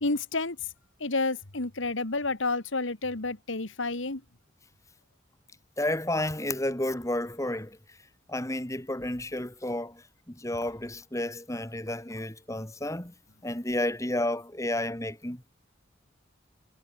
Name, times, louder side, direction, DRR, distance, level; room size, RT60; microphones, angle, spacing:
voice 1, 0.0-0.6 1.0-4.2, left 3 dB, 75° left, 2.1 m, -30 dB
voice 2, 5.8-7.8 8.3-13.1 13.4-15.5, left 1 dB, 15° left, 2.1 m, -31 dB
head